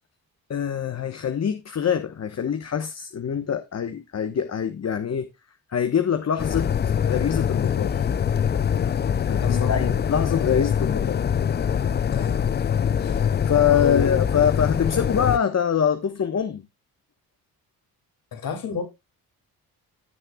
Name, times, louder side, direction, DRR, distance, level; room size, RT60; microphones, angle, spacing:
voice 1, 0.5-5.3 5.7-6.7 7.1-8.0 8.8-9.0 9.3-11.2 13.5-16.7, left 8 dB, 45° left, 1.1 m, -24 dB
sound 1, 6.4-15.4, left 8 dB, 30° left, 0.4 m, -24 dB
voice 2, 9.4-10.0 12.1-12.5 13.0-13.2 13.7-14.1 18.3-18.8, left 7 dB, 65° left, 3.0 m, -29 dB
16.0 x 6.5 x 2.3 m
cardioid pair, 85°, 37 cm